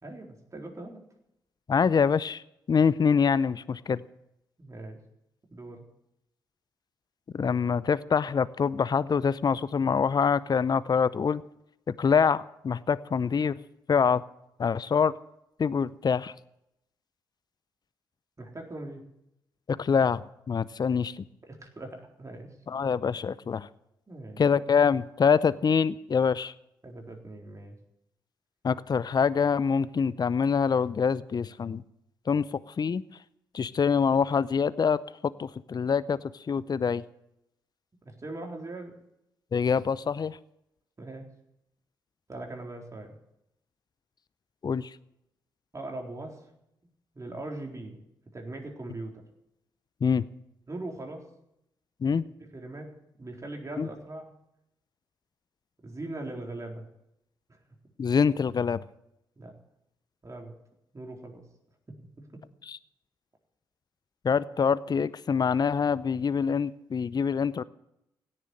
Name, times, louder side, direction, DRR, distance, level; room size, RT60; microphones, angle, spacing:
voice 1, 0.0-1.0 4.6-5.0 5.5-5.8 18.4-19.0 21.5-22.5 24.1-24.4 26.8-27.7 38.0-38.9 41.0-41.3 42.3-43.1 45.7-46.4 47.1-48.0 48.3-49.2 50.7-51.2 52.1-52.9 53.2-54.3 55.8-56.9 57.5-57.6 59.4-59.5 60.2-60.5 60.9-61.4 62.3-62.4, right 2 dB, 30° right, 1 dB, 4.1 m, -40 dB
voice 2, 1.7-2.4 2.7-4.0 7.3-11.4 12.0-13.6 13.9-14.2 14.6-15.1 15.6-16.3 19.7-21.2 22.7-23.7 24.4-26.5 28.6-31.8 32.3-32.5 32.8-33.0 33.5-36.2 36.5-37.0 39.5-40.4 44.6-44.9 50.0-50.2 52.0-52.2 53.8-53.9 58.0-58.8 62.7-62.8 64.2-67.6, left 6 dB, 40° left, 18 dB, 0.6 m, -25 dB
16.5 x 7.5 x 9.8 m, 0.81 s
hypercardioid pair, 40°, 11 cm